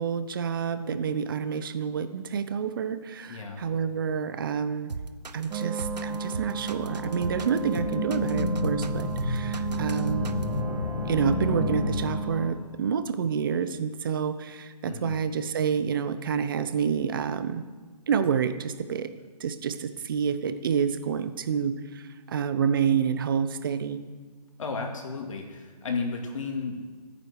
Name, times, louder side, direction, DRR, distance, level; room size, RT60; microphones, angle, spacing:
voice 1, 0.0-4.9 5.3-10.3 11.1-17.6 18.1-19.1 19.4-24.0, right 7 dB, 35° right, 11 dB, 0.8 m, -28 dB
voice 2, 3.3-3.7 14.8-15.2 24.6-26.8, left 4 dB, 50° left, 3 dB, 2.5 m, -33 dB
sound 1, 4.9-10.6, right 4 dB, 85° right, 0.9 m, -37 dB
sound 2, 5.5-12.5, right 5 dB, 10° right, 1.0 m, -34 dB
sound 3, 6.3-12.6, left 3 dB, 70° left, 1.9 m, -31 dB
14.0 x 9.5 x 6.4 m, 1.4 s
hypercardioid pair, 155°, 21 cm